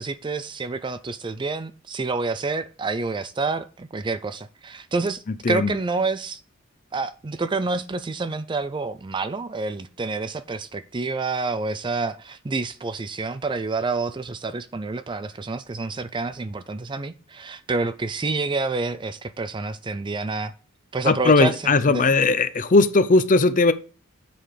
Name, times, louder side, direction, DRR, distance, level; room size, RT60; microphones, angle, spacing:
voice 1, 0.0-6.4 6.9-20.5 20.9-22.1, right 3 dB, 20° right, 0.4 m, -28 dB
voice 2, 21.1-23.7, left 3 dB, 40° left, 0.6 m, -18 dB
7.8 x 4.9 x 5.0 m
head